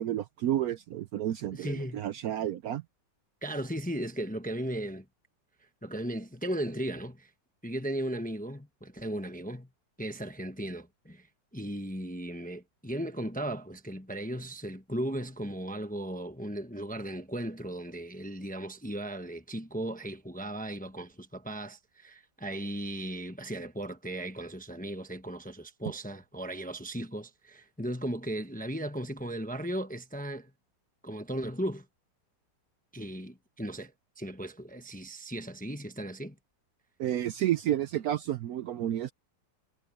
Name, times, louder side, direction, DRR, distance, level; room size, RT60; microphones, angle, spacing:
voice 1, 0.0-2.8 37.0-39.1, right 12 dB, 70° right, 0.9 m, -31 dB
voice 2, 1.5-2.0 3.4-5.0 5.8-7.3 7.6-9.7 10.0-11.3 11.5-30.5 31.0-31.8 32.9-36.3, right 1 dB, 5° left, 0.8 m, -36 dB
omnidirectional pair, 1.9 m